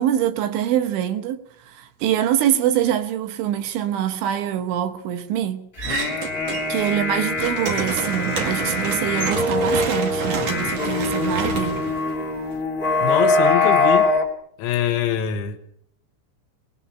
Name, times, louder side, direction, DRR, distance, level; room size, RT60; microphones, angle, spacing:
voice 1, 0.0-5.7 6.7-11.8, right 10 dB, 75° right, 3.3 m, -24 dB
sound 1, 5.8-14.2, left 3 dB, 35° left, 1.6 m, -23 dB
sound 2, 5.8-6.9 7.2-12.6, right 5 dB, 50° right, 2.8 m, -29 dB
voice 2, 13.0-14.1 14.6-15.6, left 11 dB, 75° left, 3.5 m, -23 dB
23.0 x 20.0 x 5.7 m
omnidirectional pair, 5.9 m